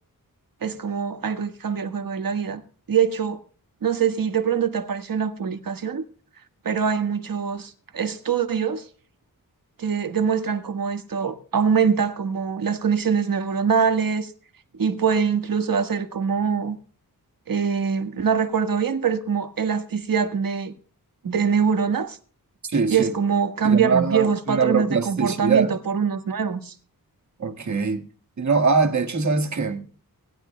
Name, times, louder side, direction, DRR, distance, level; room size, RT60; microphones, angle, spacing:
voice 1, 0.6-2.6 2.9-3.4 3.8-6.0 6.6-8.8 9.8-14.3 14.8-16.8 17.5-20.7 21.2-22.2 22.9-26.7, right 6 dB, 65° right, 1.5 m, -23 dB
voice 2, 22.6-23.1 23.6-25.8 27.4-28.0 28.4-29.9, right 5 dB, 50° right, 1.8 m, -22 dB
21.0 x 11.5 x 2.2 m
wide cardioid pair, 85°, 37 cm